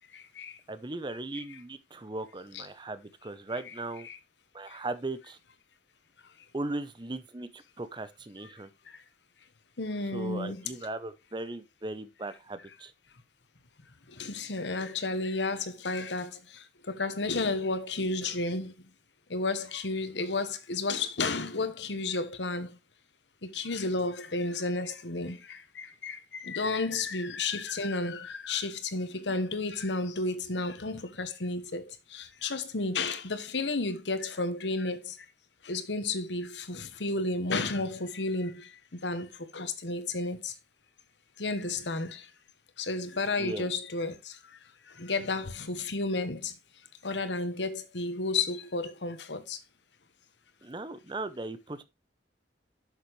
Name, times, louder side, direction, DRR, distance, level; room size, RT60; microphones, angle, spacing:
voice 1, 0.7-4.1 4.5-5.4 6.5-8.7 10.1-12.9 26.9-27.0 43.4-43.7 50.6-51.8, right 2 dB, 25° right, 0.7 m, -38 dB
voice 2, 9.8-10.6 14.2-16.3 16.9-18.7 19.3-22.7 23.5-25.4 25.8-26.2 26.4-31.8 32.1-35.1 35.7-38.6 39.0-39.3 39.5-40.5 41.4-42.2 42.8-44.1 45.0-46.5 47.0-49.6, left 3 dB, 90° left, 1.2 m, -32 dB
8.0 x 6.7 x 3.1 m
head